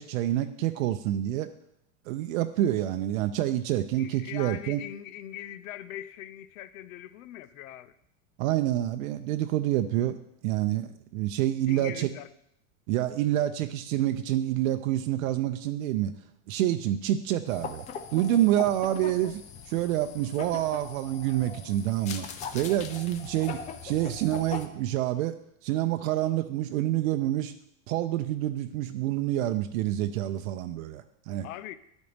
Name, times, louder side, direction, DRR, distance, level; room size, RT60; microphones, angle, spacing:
voice 1, 0.0-1.5 2.1-4.8 8.4-10.2 10.4-12.1 12.9-16.1 16.5-17.9 18.1-19.4 19.7-22.3 22.5-25.3 25.6-27.5 27.9-31.5, right 13 dB, 75° right, 0.6 m, -27 dB
voice 2, 3.9-8.0 11.7-12.3 31.4-31.8, left 12 dB, 75° left, 0.7 m, -41 dB
sound 1, 17.5-24.7, left 6 dB, 20° left, 0.3 m, -40 dB
12.0 x 4.1 x 3.4 m
supercardioid pair, 140°, 41 cm